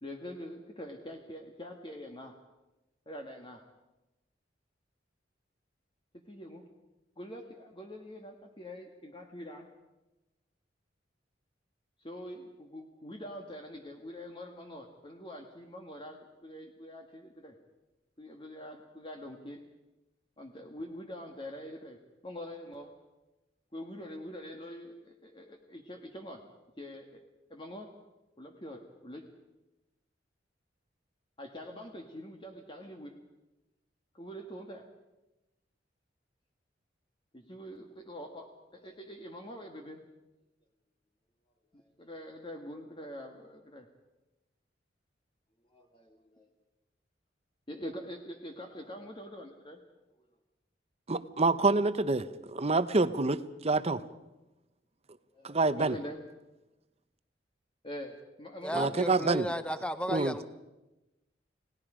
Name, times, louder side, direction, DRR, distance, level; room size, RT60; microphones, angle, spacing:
voice 1, 0.0-2.4 3.1-3.6 6.1-6.7 7.2-9.7 12.0-17.5 18.2-19.6 20.4-22.0 22.2-22.9 23.7-26.4 26.8-27.2 27.5-27.9 28.4-29.3 31.4-33.2 34.1-34.9 37.3-40.0 41.7-43.9 45.7-46.5 47.7-49.8 53.8-53.9 55.3-56.2 57.8-58.9, equal, 30° left, 3 dB, 1.7 m, -44 dB
voice 2, 51.1-54.0 55.4-56.0 58.7-59.5 60.1-60.3, right 3 dB, 35° right, 13 dB, 0.9 m, -27 dB
voice 3, 58.6-60.5, equal, 5° left, 11 dB, 1.0 m, -34 dB
29.5 x 18.0 x 5.1 m, 1.0 s
head